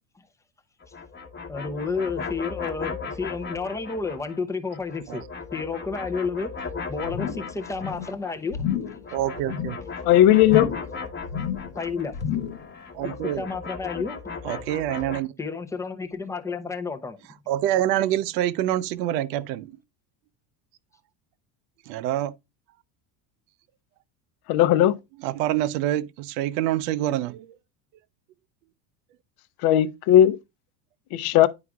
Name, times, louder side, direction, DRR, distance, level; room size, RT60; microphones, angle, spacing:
sound 1, 0.8-4.4 4.7-8.4 8.6-15.2, left 4 dB, 20° left, 1.1 m, -37 dB
voice 1, 1.5-6.6 6.9-8.8 11.7-12.5 13.4-14.3 15.4-17.2, left 4 dB, 5° left, 0.5 m, -31 dB
sound 2, 7.0-7.5 7.8-8.2 8.5-9.0 9.4-9.8 10.4-11.0 11.2-11.7 12.1-12.7 13.0-13.1, left 8 dB, 70° left, 1.2 m, -30 dB
voice 2, 9.1-9.8 12.9-13.5 14.4-15.3 17.5-19.8 21.9-22.3 25.2-27.5, right 13 dB, 75° right, 0.7 m, -26 dB
voice 3, 10.0-10.7 24.5-25.0 29.6-30.4 31.1-31.5, left 12 dB, 55° left, 0.7 m, -17 dB
9.7 x 4.8 x 2.3 m
supercardioid pair, 135°, 48 cm